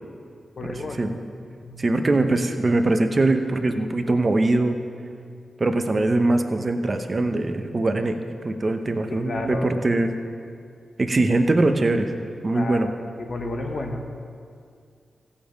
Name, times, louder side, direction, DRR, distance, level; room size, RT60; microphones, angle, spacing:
voice 1, 0.6-1.0 1.6-1.8 9.1-9.7 12.5-12.9 13.2-14.2, left 2 dB, 45° left, 4 dB, 1.1 m, -31 dB
voice 2, 1.8-4.8 5.6-8.2 8.4-10.1 11.0-12.1 12.4-12.9, right 2 dB, 30° right, 6 dB, 0.7 m, -22 dB
16.5 x 7.2 x 5.2 m, 2.3 s
wide cardioid pair, 160°, 0 cm